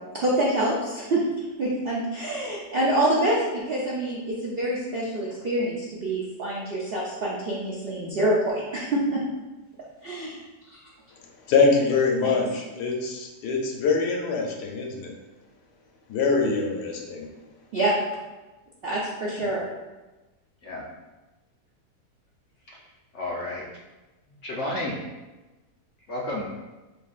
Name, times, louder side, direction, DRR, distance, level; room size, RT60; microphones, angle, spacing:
voice 1, 0.1-1.2 1.6-9.2 10.0-10.4 10.7-10.8 12.2-12.4 17.7-17.9 18.8-19.6, right 1 dB, 65° right, -5 dB, 0.5 m, -26 dB
voice 2, 11.4-15.1 16.1-17.3, left 4 dB, 80° left, 1 dB, 1.3 m, -24 dB
voice 3, 23.1-23.6 24.4-25.0 26.1-26.5, left 1 dB, 60° left, -3 dB, 0.7 m, -32 dB
6.7 x 2.6 x 2.4 m, 1.1 s
omnidirectional pair, 1.8 m